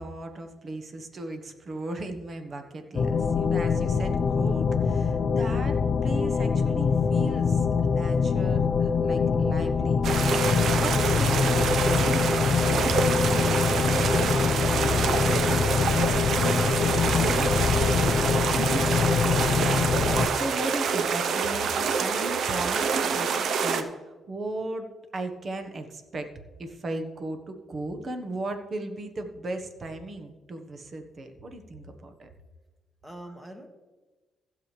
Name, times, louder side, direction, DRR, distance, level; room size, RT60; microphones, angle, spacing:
voice 1, 0.0-12.9 13.2-13.5 19.7-26.3 26.6-32.3, right 2 dB, 40° right, 6 dB, 1.3 m, -37 dB
sound 1, 2.9-20.3, left 5 dB, 45° left, 0.6 m, -24 dB
sound 2, 10.0-23.8, right 6 dB, 65° right, 0.8 m, -26 dB
voice 2, 13.4-16.2 16.7-19.1 33.0-33.7, equal, 10° right, 4 dB, 1.6 m, -42 dB
16.0 x 7.0 x 3.3 m, 1.2 s
cardioid pair, 90°, 0 cm